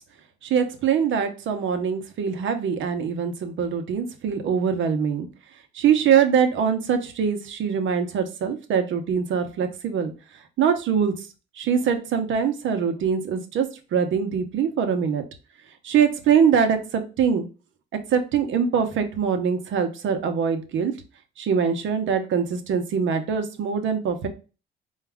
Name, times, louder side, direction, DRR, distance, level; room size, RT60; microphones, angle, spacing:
voice 1, 0.4-5.3 5.7-10.1 10.6-11.3 11.6-13.6 13.9-15.2 15.8-17.4 17.9-20.9 21.4-24.3, right 7 dB, 75° right, 6 dB, 0.9 m, -23 dB
4.5 x 2.4 x 3.4 m, 0.33 s
cardioid pair, 90°, 20 cm